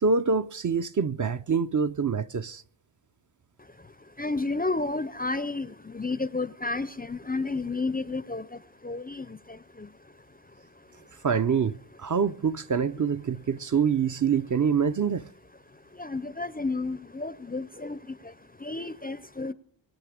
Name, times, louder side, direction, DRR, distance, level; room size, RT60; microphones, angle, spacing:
voice 1, 0.0-2.6 11.2-11.7 12.0-15.2, right 6 dB, 40° right, 0.5 m, -25 dB
voice 2, 4.2-8.4 8.8-9.4 9.8-9.9 16.0-18.0 18.6-19.5, left 3 dB, 20° left, 0.5 m, -31 dB
23.5 x 9.3 x 4.9 m
wide cardioid pair, 90°, 46 cm